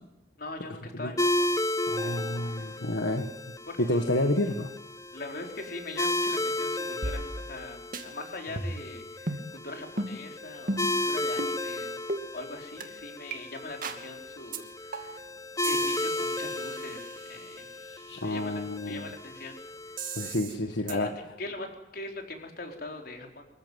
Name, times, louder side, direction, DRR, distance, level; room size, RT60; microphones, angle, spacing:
voice 1, 0.4-1.5 1.8-2.7 3.7-3.8 5.1-12.0 12.3-15.2 15.6-17.6 18.2-19.6 20.9-21.1 21.4-21.7 21.9-23.4, left 2 dB, 55° left, 2 dB, 4.3 m, -41 dB
sound 1, 1.2-20.3, left 1 dB, 20° left, 0.9 m, -34 dB
voice 2, 1.9-3.3 3.8-4.7 17.8-19.1 20.2-21.1, left 1 dB, 75° left, 5 dB, 1.6 m, -29 dB
sound 2, 7.0-7.7 7.9-8.0 8.6-8.9 9.3-9.5 10.0-10.1 10.7-11.0 11.4-11.6 12.1-12.2 12.8-12.9 13.3-13.4 13.8-14.0 14.5-14.6 14.9-15.3 15.6-17.5 20.0-20.6 20.9-21.0, right 2 dB, 50° right, 2.4 m, -35 dB
26.0 x 14.5 x 9.3 m, 0.95 s
head